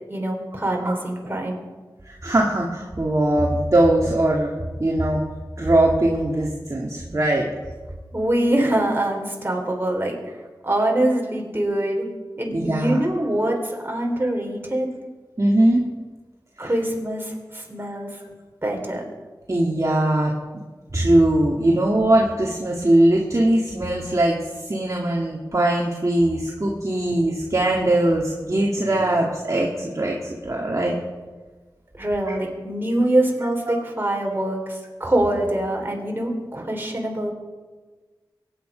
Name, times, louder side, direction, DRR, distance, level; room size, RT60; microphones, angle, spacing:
voice 1, 0.1-1.6 8.1-10.4 10.6-12.1 12.4-14.9 16.6-18.1 18.6-19.0 31.9-37.3, right 1 dB, 30° right, 0 dB, 3.8 m, -24 dB
voice 2, 2.0-4.5 4.8-5.2 5.6-7.5 12.5-13.0 15.4-15.8 16.6-16.7 19.5-20.3 20.9-31.0 33.7-33.8, right 1 dB, 45° right, -2 dB, 2.0 m, -20 dB
23.0 x 9.6 x 5.0 m, 1.3 s
wide cardioid pair, 60°, 8 cm